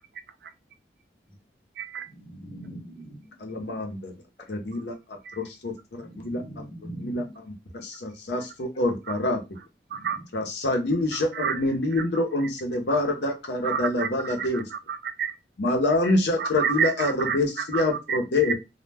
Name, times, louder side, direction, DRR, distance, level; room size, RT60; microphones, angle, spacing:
voice 1, 1.8-2.1 4.7-4.8 5.2-5.4 9.1-9.2 9.9-10.2 11.1-11.6 11.9-12.1 12.4-12.5 12.9-13.0 13.6-15.4 16.4-18.5, right 7 dB, 65° right, 0.3 m, -30 dB
voice 2, 2.3-3.3 6.0-7.2 9.9-10.0, right 1 dB, 30° left, 0.8 m, -41 dB
voice 3, 3.4-4.1 4.5-6.4 7.0-7.5 7.8-9.4 10.3-14.6 15.6-18.5, left 2 dB, 75° left, 0.6 m, -26 dB
2.1 x 2.1 x 3.3 m
head